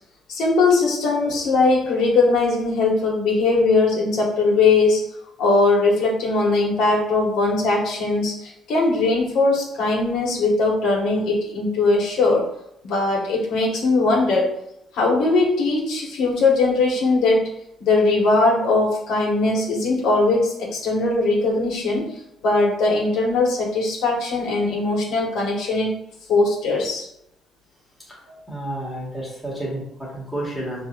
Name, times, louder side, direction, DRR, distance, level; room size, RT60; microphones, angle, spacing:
voice 1, 0.3-5.0 5.4-12.4 12.8-14.6 14.9-17.5 17.8-22.1 22.4-25.9 26.3-27.1, left 3 dB, 80° left, -3 dB, 1.6 m, -20 dB
voice 2, 28.5-30.8, right 1 dB, ahead, -7 dB, 1.6 m, -30 dB
6.3 x 3.2 x 2.6 m, 0.79 s
cardioid pair, 170°, 0 cm